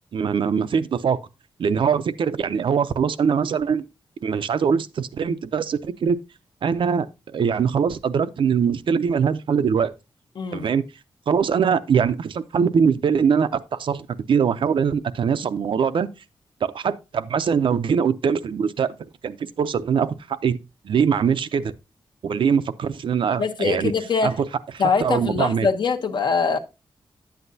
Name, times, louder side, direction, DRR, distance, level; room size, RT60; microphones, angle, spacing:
voice 1, 0.1-1.2 1.6-3.8 4.2-6.2 6.6-7.1 7.3-9.9 10.5-10.9 11.3-16.1 16.7-18.9 19.2-20.6 20.8-21.7 22.2-23.9 24.2-24.3 25.0-25.7, right 6 dB, 65° right, 0.5 m, -22 dB
voice 2, 10.3-10.7 23.4-24.4 24.8-26.6, left 5 dB, 55° left, 0.9 m, -23 dB
10.5 x 7.9 x 2.7 m
wide cardioid pair, 170°, 9 cm